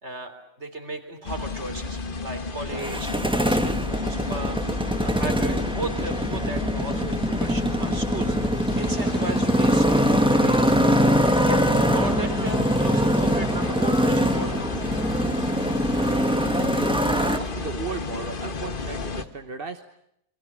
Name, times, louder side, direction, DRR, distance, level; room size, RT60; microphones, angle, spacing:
voice 1, 0.0-0.3 0.6-4.6 5.0-10.7 11.5-14.7, right 2 dB, 70° right, 7 dB, 3.9 m, -35 dB
sound 1, 1.2-19.2, left 4 dB, 45° left, 1.6 m, -32 dB
Motorcycle, 2.7-17.4, equal, 5° right, 1.6 m, -23 dB
voice 2, 15.9-19.8, right 5 dB, 50° right, 7 dB, 1.4 m, -36 dB
30.0 x 23.5 x 7.5 m, 0.76 s
omnidirectional pair, 1.2 m